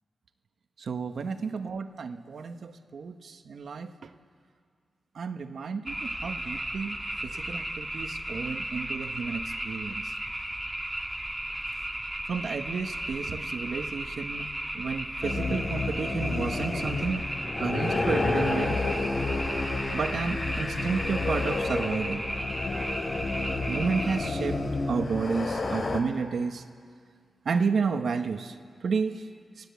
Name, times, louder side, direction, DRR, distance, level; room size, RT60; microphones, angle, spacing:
voice 1, 0.8-4.1 5.1-7.0 7.2-10.1 12.3-14.5 14.7-17.2 17.6-18.8 19.9-22.3 23.7-24.6 24.9-26.6 27.4-28.6 28.8-29.2, right 5 dB, 75° right, 7 dB, 1.3 m, -31 dB
sound 1, 5.9-24.3, right 1 dB, 10° right, 1.6 m, -35 dB
sound 2, 15.2-26.0, left 3 dB, 55° left, 2.7 m, -30 dB
29.5 x 18.0 x 8.3 m, 2.1 s
cardioid pair, 85°, 0 cm